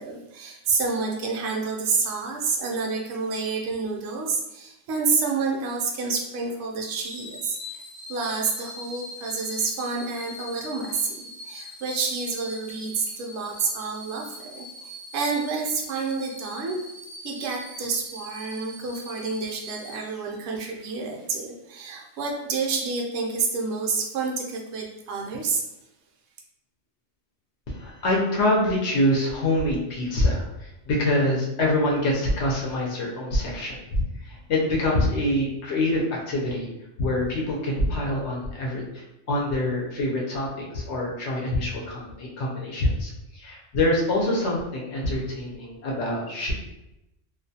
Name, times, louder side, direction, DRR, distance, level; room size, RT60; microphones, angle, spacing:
voice 1, 0.0-7.8 8.1-16.8 17.2-25.6, right 4 dB, 70° right, 0 dB, 0.8 m, -29 dB
sound 1, 7.0-20.7 21.1-21.3, left 1 dB, 35° left, 0.3 m, -42 dB
voice 2, 27.7-36.7 37.0-46.5, left 1 dB, 70° left, -3 dB, 0.8 m, -25 dB
2.4 x 2.2 x 2.7 m, 0.90 s
omnidirectional pair, 1.3 m